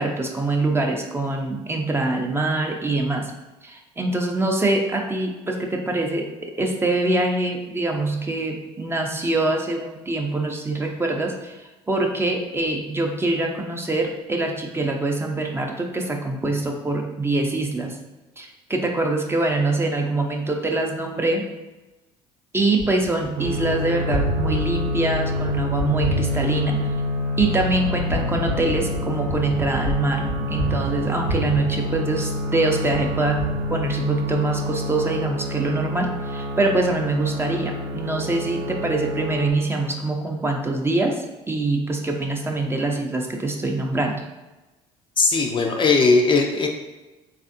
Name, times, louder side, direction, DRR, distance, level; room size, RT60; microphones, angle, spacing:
voice 1, 0.0-3.3 3.6-18.0 18.4-21.4 22.5-26.9 27.4-44.2, right 2 dB, 15° right, 2 dB, 0.6 m, -24 dB
Gunshot gunfire, 22.8-32.5 32.9-34.3, right 1 dB, 85° left, 1.1 m, -30 dB
sound 1, 23.4-39.5, left 1 dB, 60° right, 0.7 m, -28 dB
voice 2, 45.2-46.7, left 3 dB, 35° left, 3 dB, 0.4 m, -18 dB
3.4 x 2.4 x 2.6 m, 1.1 s
hypercardioid pair, 70°, 14 cm